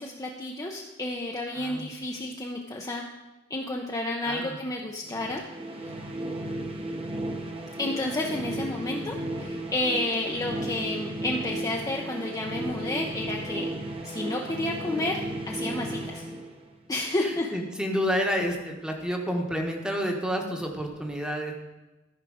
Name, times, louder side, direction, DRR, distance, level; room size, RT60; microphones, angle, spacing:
voice 1, 0.0-3.0 3.5-5.4 5.8-5.9 7.8-13.7 14.0-15.2 15.5-16.2 16.9-17.5, left 2 dB, 15° left, -1 dB, 0.6 m, -31 dB
voice 2, 1.5-1.9 4.2-4.6 17.2-21.5, equal, 5° right, 2 dB, 1.1 m, -29 dB
sound 1, 5.1-17.0, right 1 dB, 25° right, 0.9 m, -34 dB
14.0 x 4.9 x 4.9 m, 1.1 s
head